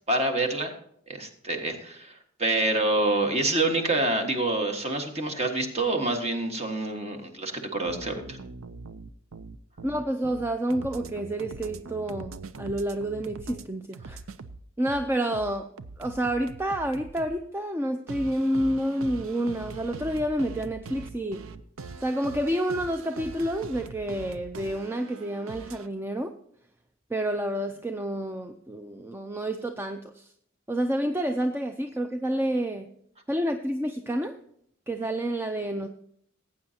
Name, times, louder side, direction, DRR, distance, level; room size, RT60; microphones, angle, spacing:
voice 1, 0.1-0.7 1.1-8.4, right 2 dB, 30° right, 4 dB, 1.6 m, -27 dB
sound 1, 7.9-13.6 13.9-17.4 18.1-25.9, right 3 dB, 75° right, 0.6 m, -42 dB
voice 2, 9.8-14.2 14.8-15.7 16.0-21.4 22.0-26.3 27.1-30.3 30.7-32.9 33.3-34.4 34.9-35.9, right 1 dB, 10° right, 6 dB, 0.5 m, -29 dB
18.0 x 8.7 x 2.8 m, 0.66 s
head